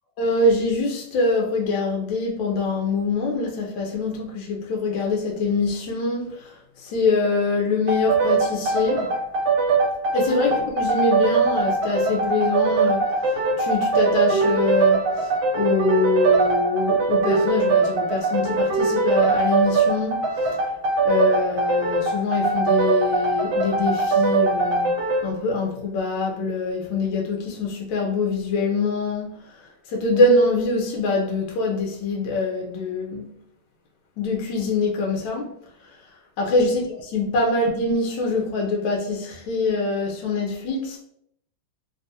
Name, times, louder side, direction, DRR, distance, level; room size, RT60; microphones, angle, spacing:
voice 1, 0.2-9.1 10.1-20.2 21.0-29.3 29.6-33.3 34.2-35.5 35.8-36.0 36.4-41.0, left 3 dB, 70° left, 1.2 m, -24 dB
sound 1, 7.9-25.3, right 3 dB, 75° right, 1.3 m, -21 dB
3.3 x 2.4 x 2.6 m
omnidirectional pair, 2.3 m